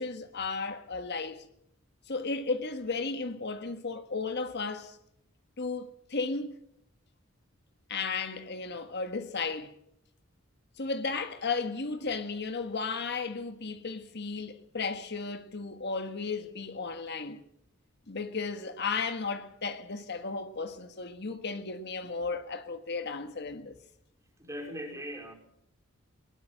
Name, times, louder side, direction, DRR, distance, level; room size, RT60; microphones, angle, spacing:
voice 1, 0.0-1.4 2.1-5.0 5.6-6.6 7.9-9.7 10.8-17.4 18.1-23.7, left 4 dB, 55° left, 1.5 m, -34 dB
voice 2, 24.4-25.3, equal, 15° right, 4.6 m, -39 dB
21.0 x 20.5 x 7.6 m
head